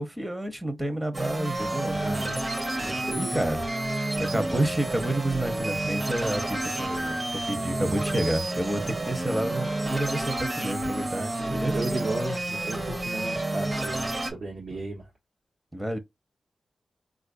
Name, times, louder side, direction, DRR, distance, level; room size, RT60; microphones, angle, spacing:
voice 1, 0.0-2.0 3.2-3.7 4.2-11.8 14.7-14.8 15.7-16.0, right 1 dB, 15° right, 0.7 m, -30 dB
sound 1, 1.1-14.3, right 2 dB, 35° right, 1.0 m, -30 dB
voice 2, 1.9-2.4 2.8-3.4 11.1-11.3 11.7-15.1, right 1 dB, 70° right, 1.2 m, -34 dB
4.3 x 2.4 x 2.5 m
wide cardioid pair, 100°, 0 cm